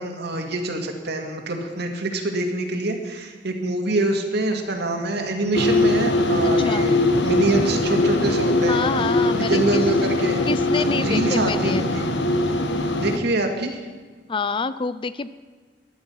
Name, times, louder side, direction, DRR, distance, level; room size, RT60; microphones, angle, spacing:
voice 1, 0.0-8.8 9.4-10.4 10.7-12.1 13.0-13.8, right 2 dB, 65° right, 4 dB, 2.0 m, -25 dB
sound 1, 4.4-13.0, right 1 dB, 50° left, 2.1 m, -38 dB
sound 2, 5.5-13.2, left 2 dB, 70° left, 1.3 m, -21 dB
voice 2, 6.4-6.9 8.7-9.8 10.5-11.8 14.3-15.3, left 4 dB, 30° left, 14 dB, 0.4 m, -27 dB
14.0 x 11.5 x 5.7 m, 1.5 s
head